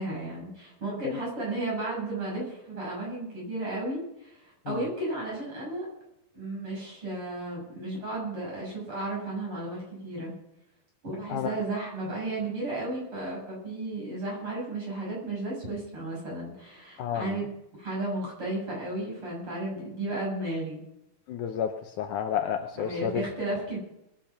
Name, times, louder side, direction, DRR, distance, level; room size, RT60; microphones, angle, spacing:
voice 1, 0.0-5.9 6.3-10.3 11.0-17.5 17.8-20.8 22.7-23.8, right 2 dB, 35° right, -3 dB, 8.0 m, -34 dB
voice 2, 17.0-17.4 21.3-21.7 22.0-23.2, left 8 dB, 70° left, 6 dB, 2.2 m, -30 dB
21.5 x 8.9 x 5.9 m, 0.84 s
omnidirectional pair, 4.0 m